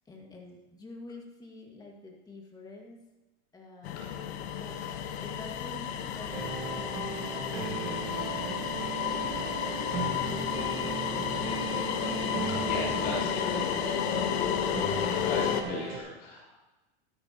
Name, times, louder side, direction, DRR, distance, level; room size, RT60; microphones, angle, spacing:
voice 1, 0.1-3.1 3.5-4.1 4.5-4.8 5.1-8.8 9.6-10.4, left 2 dB, 10° left, 0 dB, 1.8 m, -48 dB
sound 1, 3.8-15.6, left 10 dB, 75° left, 1.3 m, -32 dB
sound 2, 6.3-16.0, right 5 dB, 30° right, 1.6 m, -36 dB
voice 2, 12.6-13.7 15.2-16.5, left 2 dB, 40° left, -6 dB, 3.6 m, -37 dB
13.5 x 12.5 x 2.9 m, 1.0 s
supercardioid pair, 150°, 33 cm